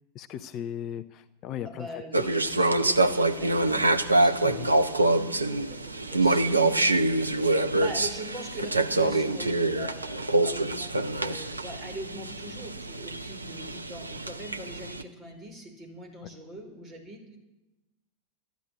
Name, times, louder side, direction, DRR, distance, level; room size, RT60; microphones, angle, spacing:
voice 1, 0.1-1.9 2.2-2.3 4.4-4.7, left 10 dB, 35° left, 12 dB, 0.6 m, -37 dB
voice 2, 1.6-17.4, right 1 dB, 25° right, 2 dB, 4.6 m, -42 dB
sound 1, 2.1-15.0, right 2 dB, 80° right, 0.7 m, -25 dB
13.0 x 10.5 x 8.8 m, 1.0 s
figure-of-eight pair, 90°, 0 cm